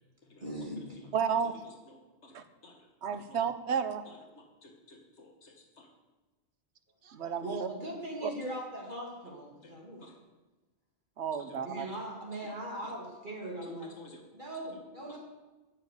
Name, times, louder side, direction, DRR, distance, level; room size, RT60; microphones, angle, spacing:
voice 1, 0.4-1.1 7.4-10.1 11.6-13.9 14.3-15.2, right 1 dB, 45° right, -3 dB, 2.7 m, -40 dB
voice 2, 1.1-1.5 2.3-2.4 3.0-4.0 7.1-7.7 8.2-8.3 11.2-11.9, right 7 dB, 80° right, 10 dB, 1.1 m, -32 dB
voice 3, 1.6-2.4 2.6-2.9 3.3-3.4 4.1-5.9 9.3-9.4 9.6-9.7 10.0-10.2 11.4-11.6 11.9-12.0 12.4-12.5 12.8-12.9 13.6-14.2 15.1-15.2, left 2 dB, 90° left, 2 dB, 1.8 m, -55 dB
9.4 x 6.6 x 8.5 m, 1.2 s
omnidirectional pair, 1.1 m